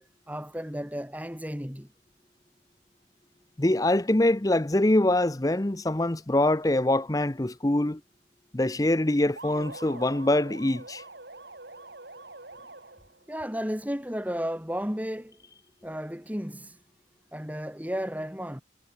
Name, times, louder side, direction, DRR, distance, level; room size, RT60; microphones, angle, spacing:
voice 1, 0.0-1.9 13.3-15.4 15.8-16.8 17.3-18.6, equal, 10° right, 6.0 m, -33 dB
voice 2, 3.6-8.0 8.5-11.0, left 1 dB, 20° left, 0.7 m, -24 dB
sound 1, 9.4-13.2, right 2 dB, 65° right, 7.5 m, -44 dB
head